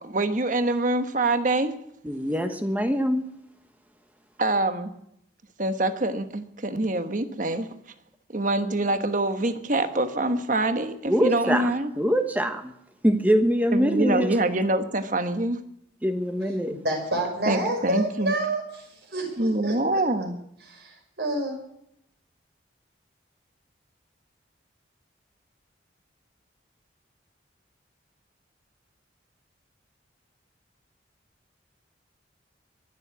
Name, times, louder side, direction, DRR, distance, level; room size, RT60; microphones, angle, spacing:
voice 1, 0.0-1.7 4.4-4.9 5.6-7.7 8.3-11.9 13.7-15.6 17.5-18.3 19.4-20.4, right 2 dB, 45° right, 8 dB, 1.3 m, -25 dB
voice 2, 2.0-3.3 11.1-11.7 12.0-12.7 13.0-14.3 16.0-16.8, equal, 10° right, 7 dB, 1.2 m, -23 dB
voice 3, 16.7-20.0 20.7-21.5, right 1 dB, 60° right, 2 dB, 5.6 m, -29 dB
22.5 x 7.6 x 8.2 m, 0.77 s
head